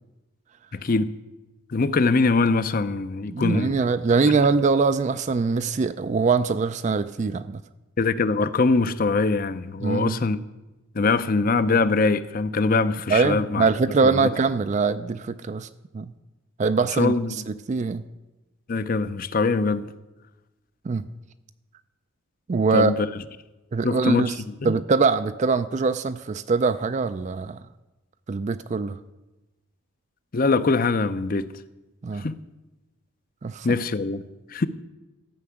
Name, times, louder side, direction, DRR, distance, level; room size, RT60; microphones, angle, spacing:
voice 1, 0.7-1.1 1.7-3.8 8.0-10.4 10.9-13.7 14.0-14.3 17.0-17.4 18.7-19.9 22.7-23.1 23.8-24.3 24.6-24.7 30.3-31.5 32.2-32.4 33.6-34.2 34.5-34.7, left 3 dB, 40° left, 0.5 m, -23 dB
voice 2, 3.3-7.6 9.8-10.2 13.1-15.7 15.9-16.1 16.6-17.2 17.5-18.0 20.8-21.1 22.5-22.9 23.7-24.4 24.6-27.6 28.3-29.0 32.0-32.2 33.4-33.8, right 4 dB, 35° right, 0.3 m, -23 dB
13.5 x 5.9 x 8.6 m
head